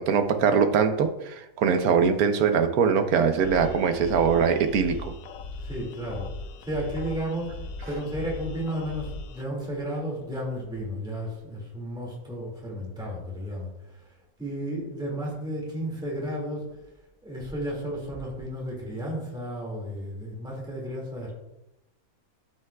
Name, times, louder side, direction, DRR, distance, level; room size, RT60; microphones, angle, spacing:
voice 1, 0.0-5.1, right 6 dB, 85° right, 8 dB, 1.2 m, -22 dB
sound 1, 3.4-9.4, left 3 dB, 75° left, 1.0 m, -39 dB
voice 2, 5.6-6.3 6.6-14.1 14.4-16.7 17.2-21.3, equal, 5° right, -3 dB, 2.1 m, -33 dB
12.5 x 5.6 x 2.3 m, 0.92 s
omnidirectional pair, 1.5 m